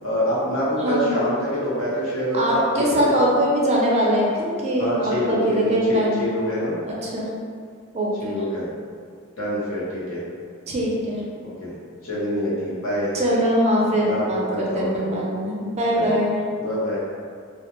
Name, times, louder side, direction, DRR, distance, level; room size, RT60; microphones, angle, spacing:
voice 1, 0.0-3.1 4.8-6.7 8.2-8.7 9.4-10.2 11.4-11.7 12.0-13.1 14.0-15.1 15.9-16.1 16.6-17.0, equal, 75° left, -8 dB, 0.8 m, -25 dB
voice 2, 0.8-1.1 2.3-6.3 6.9-7.3 7.9-8.4 10.7-11.2 13.1-16.4, equal, 30° right, -4 dB, 0.4 m, -22 dB
2.3 x 2.1 x 2.9 m, 2.1 s
head